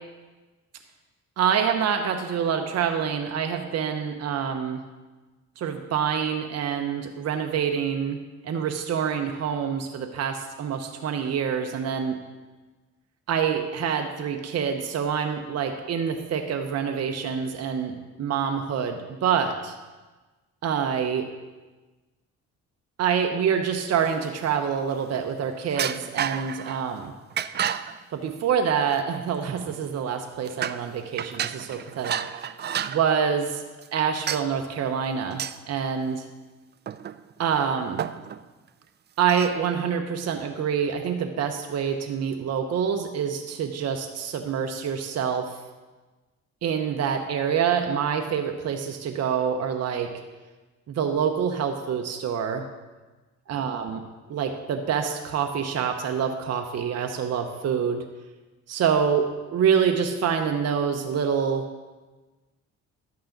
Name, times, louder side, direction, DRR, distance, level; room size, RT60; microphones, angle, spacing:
voice 1, 1.4-4.8 5.6-12.2 13.3-19.7 20.6-21.3 23.0-27.1 28.1-32.5 32.9-33.6 33.9-36.2 37.4-38.0 39.2-45.5 46.6-50.1 50.9-52.7 53.5-54.0 54.3-58.0 58.7-59.3 59.5-61.7, right 7 dB, 55° right, 4 dB, 0.9 m, -26 dB
sound 1, 24.1-24.7 25.7-26.8 27.3-28.0 28.9-29.0 29.5-29.9 30.4-30.9 31.2-33.0 33.8-33.9 34.3-34.5 35.3-35.6 36.9-37.4 37.7-37.8 38.0-38.4 39.3-39.6, right 9 dB, 35° right, 0.4 m, -31 dB
11.5 x 8.5 x 3.9 m, 1.2 s
cardioid pair, 90°, 30 cm